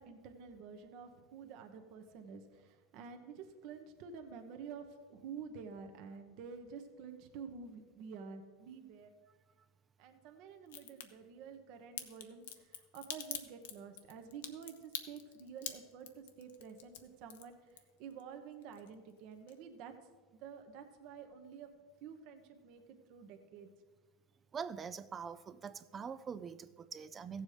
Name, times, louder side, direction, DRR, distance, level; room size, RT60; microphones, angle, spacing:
voice 1, 0.0-9.1 10.0-17.6 18.0-19.9 20.3-21.7 22.0-23.7, right 6 dB, 50° right, 6 dB, 1.1 m, -50 dB
Crack, 10.7-11.1 12.0-18.2 18.5-19.2 19.5-19.6, left 10 dB, 90° left, 0.9 m, -44 dB
voice 2, 24.5-27.4, right 6 dB, 20° right, 14 dB, 0.4 m, -44 dB
15.0 x 7.4 x 4.9 m, 1.4 s
supercardioid pair, 140°, 0 cm